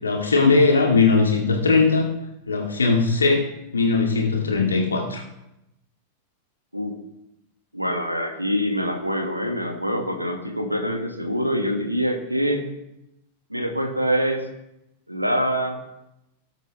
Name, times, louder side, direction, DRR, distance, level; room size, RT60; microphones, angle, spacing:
voice 1, 0.0-2.1 2.5-3.5 3.7-5.2, left 4 dB, 75° left, 0 dB, 2.3 m, -19 dB
voice 2, 7.7-12.7 13.5-14.4 15.1-15.8, equal, 90° right, 5 dB, 1.5 m, -25 dB
18.5 x 7.8 x 3.2 m, 0.87 s
figure-of-eight pair, 90°, 0 cm